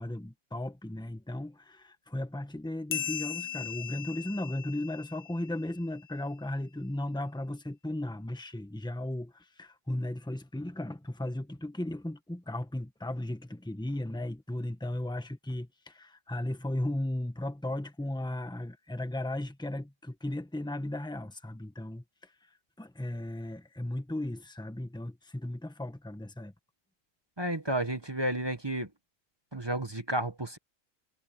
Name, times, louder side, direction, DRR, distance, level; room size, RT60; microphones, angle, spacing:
voice 1, 0.0-22.5 22.8-26.5, left 1 dB, 5° left, 1.4 m, -36 dB
sound 1, 2.9-6.0, left 10 dB, 55° left, 0.5 m, -38 dB
voice 2, 27.4-28.9 29.5-30.6, right 1 dB, 20° right, 1.3 m, -31 dB
omnidirectional pair, 1.4 m